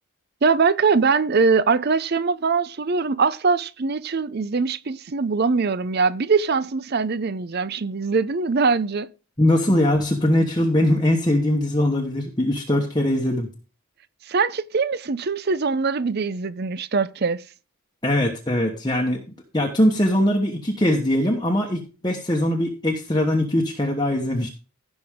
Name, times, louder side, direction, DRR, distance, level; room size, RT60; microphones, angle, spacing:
voice 1, 0.4-9.1 14.3-17.4, right 4 dB, 45° right, 0.5 m, -22 dB
voice 2, 9.4-13.5 18.0-19.2 19.5-24.5, left 1 dB, 20° left, 1.1 m, -21 dB
16.0 x 6.0 x 3.6 m
head